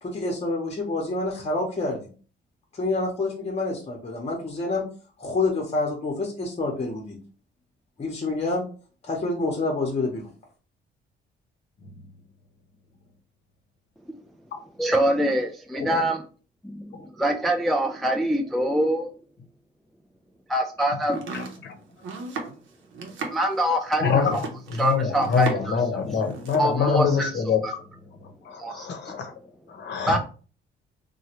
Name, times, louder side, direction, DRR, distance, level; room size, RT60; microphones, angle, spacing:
voice 1, 0.0-2.1 2.7-4.8 5.2-7.2 8.0-8.6 9.0-10.3, left 2 dB, 30° left, -1 dB, 0.9 m, -27 dB
voice 2, 14.8-16.2 16.6-19.1 20.5-21.2 23.3-24.4 24.8-25.8 26.6-27.3 27.6-27.7 28.6-29.0 30.1-30.2, right 1 dB, ahead, 2 dB, 0.3 m, -24 dB
Domestic sounds home sounds, 21.0-25.8 26.1-26.7, right 4 dB, 75° right, 0.7 m, -36 dB
voice 3, 21.3-21.8 24.0-24.4 24.7-27.6 28.2-29.3 29.7-30.2, left 6 dB, 60° left, 4 dB, 0.8 m, -25 dB
3.0 x 2.2 x 2.9 m, 0.38 s
cardioid pair, 90°, 20 cm